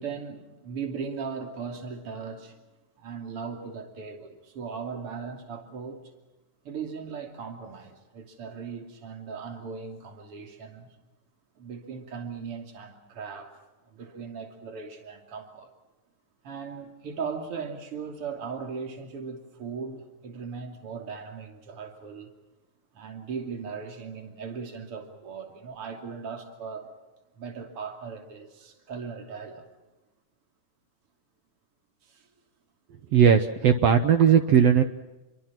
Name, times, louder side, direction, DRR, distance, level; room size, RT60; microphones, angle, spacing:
voice 1, 0.0-2.6 3.0-6.1 6.6-11.0 11.6-15.7 16.4-22.3 23.0-26.9 27.3-29.7 32.0-32.3, right 5 dB, 50° right, 3.6 m, -38 dB
voice 2, 33.1-34.8, right 8 dB, 65° right, 1.8 m, -18 dB
28.0 x 23.0 x 6.0 m
omnidirectional pair, 3.5 m